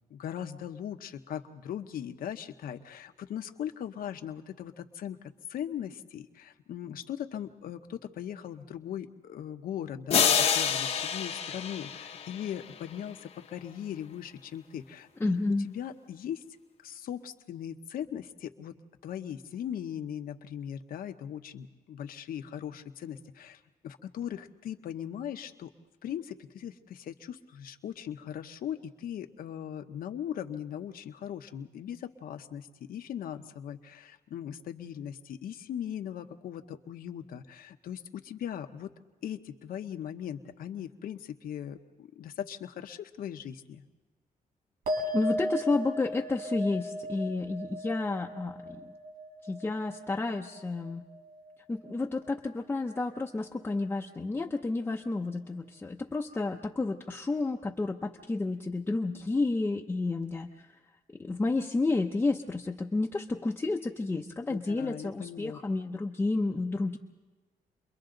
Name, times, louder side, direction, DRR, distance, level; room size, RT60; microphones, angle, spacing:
voice 1, 0.1-15.4 15.6-16.4 16.8-18.7 19.0-25.7 26.0-38.9 39.2-43.8 64.5-65.6, left 9 dB, 75° left, 7 dB, 1.1 m, -39 dB
sound 1, 10.1-12.8, left 7 dB, 45° left, 0.8 m, -27 dB
voice 2, 15.2-15.7 45.1-48.9 49.4-51.0 51.7-60.7 61.2-67.0, left 3 dB, 15° left, 0 dB, 0.7 m, -31 dB
sound 2, 44.9-51.5 51.8-52.5, equal, 85° right, 4.9 m, -37 dB
29.5 x 23.0 x 3.9 m, 1.3 s
wide cardioid pair, 175°, 15 cm